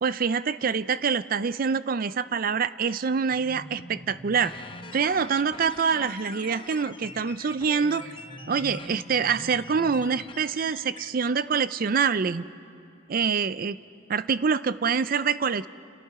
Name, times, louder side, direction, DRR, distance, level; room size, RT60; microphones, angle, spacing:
voice 1, 0.0-4.6 4.9-8.1 8.5-12.4 13.1-13.8 14.1-15.7, right 6 dB, 45° right, 15 dB, 0.5 m, -25 dB
sound 1, 3.3-10.1, equal, ahead, 6.4 m, -45 dB
sound 2, 4.3-11.1, left 4 dB, 25° left, 0.7 m, -45 dB
29.5 x 28.5 x 4.8 m, 2.5 s
head